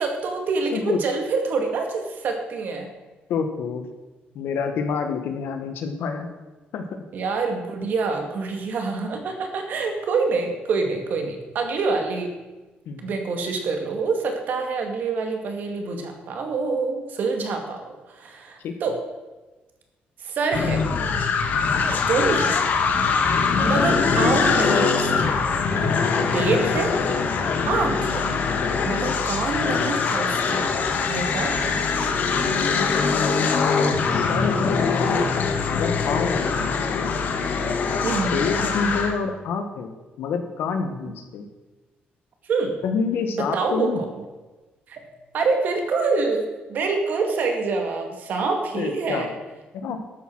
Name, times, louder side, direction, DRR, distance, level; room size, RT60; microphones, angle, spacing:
voice 1, 0.0-2.9 7.1-12.3 13.0-17.8 18.1-19.0 20.2-20.8 21.9-22.6 23.6-25.4 26.3-26.9 27.7-28.3 28.8-30.7 31.1-31.8 38.0-38.5 42.5-42.8 43.3-44.1 44.9-45.0 45.3-49.3, right 4 dB, 55° right, 4 dB, 2.2 m, -26 dB
voice 2, 3.3-3.8 4.3-6.3 6.7-6.8 12.8-13.1 18.6-18.7 32.6-32.9 34.1-37.1 38.3-41.5 42.8-44.0 48.7-49.3 49.7-50.0, left 5 dB, 75° left, 6 dB, 1.7 m, -28 dB
sound 1, 20.5-39.2, left 5 dB, 55° left, 1.4 m, -22 dB
12.5 x 8.7 x 6.3 m, 1.2 s
cardioid pair, 170°, 4 cm